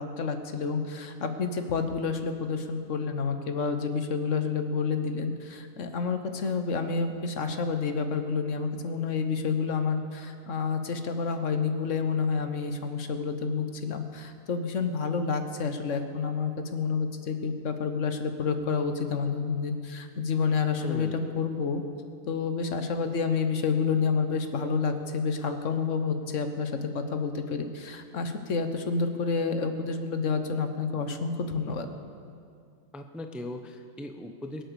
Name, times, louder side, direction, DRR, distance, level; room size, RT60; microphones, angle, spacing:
voice 1, 0.0-21.8 22.3-31.9, left 5 dB, 70° left, 7 dB, 1.4 m, -29 dB
voice 2, 20.7-21.4 32.9-34.6, left 1 dB, ahead, 6 dB, 0.6 m, -39 dB
23.0 x 7.9 x 6.9 m, 2.3 s
omnidirectional pair, 1.4 m